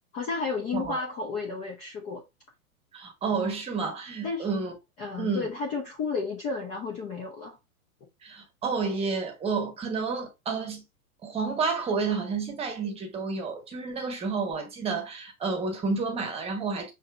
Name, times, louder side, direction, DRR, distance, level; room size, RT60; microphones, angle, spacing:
voice 1, 0.1-2.2 4.2-4.5 5.0-7.6, left 4 dB, 15° left, 0.6 m, -32 dB
voice 2, 2.9-4.7 5.2-5.5 8.2-10.8 11.2-16.9, right 4 dB, 15° right, 1.0 m, -30 dB
6.4 x 2.8 x 2.4 m
figure-of-eight pair, 105°, 43 cm